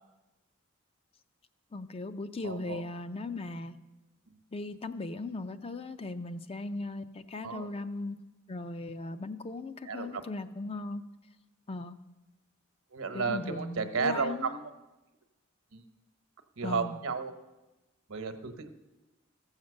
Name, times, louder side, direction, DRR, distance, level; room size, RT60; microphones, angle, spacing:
voice 1, 1.7-3.8 4.5-8.2 8.5-11.1 11.7-12.0 13.1-14.6 16.6-17.0, left 2 dB, 25° left, 10 dB, 0.5 m, -38 dB
voice 2, 2.4-2.8 7.4-7.7 9.8-10.2 12.9-14.3 15.7-15.8 16.6-17.3 18.1-18.7, right 5 dB, 75° right, 8 dB, 1.0 m, -33 dB
14.5 x 7.3 x 6.4 m, 1.1 s
head